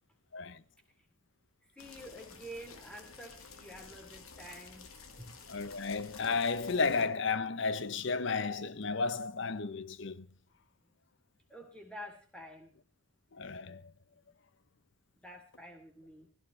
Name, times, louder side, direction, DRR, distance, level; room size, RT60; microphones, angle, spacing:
sound 1, 1.8-7.0, left 4 dB, 85° left, 1.8 m, -52 dB
voice 1, 1.8-4.9 5.2-5.3 11.5-12.7 15.2-16.3, equal, 5° left, 3.2 m, -48 dB
voice 2, 5.5-10.3 13.3-13.9, left 4 dB, 55° left, 0.7 m, -33 dB
17.0 x 16.0 x 3.3 m
head